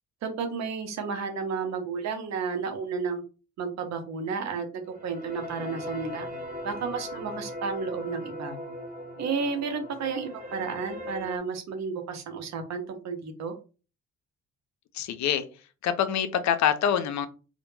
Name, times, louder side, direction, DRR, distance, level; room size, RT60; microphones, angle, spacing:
voice 1, 0.2-3.2 3.6-6.3 6.6-8.6 9.2-13.5, right 5 dB, 65° right, 6 dB, 0.7 m, -32 dB
sound 1, 4.9-11.4, left 1 dB, 30° right, 0.7 m, -39 dB
voice 2, 14.9-15.5 15.8-17.3, left 9 dB, 65° left, 10 dB, 0.5 m, -25 dB
2.1 x 2.0 x 3.1 m, 0.35 s
cardioid pair, 90°, 30 cm